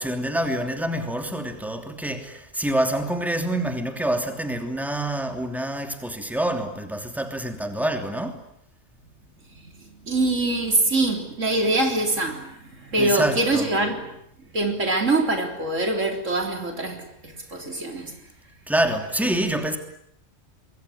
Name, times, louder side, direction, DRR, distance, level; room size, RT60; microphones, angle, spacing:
voice 1, 0.0-8.4 13.0-13.7 18.7-19.8, right 1 dB, ahead, 3.0 m, -26 dB
voice 2, 9.6-14.2 14.5-18.2, right 2 dB, 85° right, 4.1 m, -24 dB
26.0 x 21.5 x 10.0 m
omnidirectional pair, 1.3 m